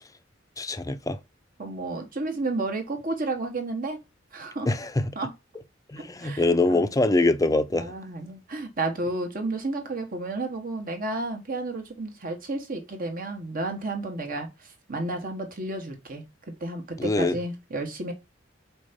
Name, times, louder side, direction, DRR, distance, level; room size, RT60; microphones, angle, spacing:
voice 1, 0.6-1.2 4.7-5.2 5.9-7.9 17.0-17.4, left 2 dB, 20° left, 0.6 m, -24 dB
voice 2, 1.6-4.0 4.3-4.7 5.1-5.3 6.0-6.9 7.7-16.2 16.6-18.1, right 2 dB, 50° right, 1.5 m, -32 dB
5.2 x 4.5 x 5.3 m
head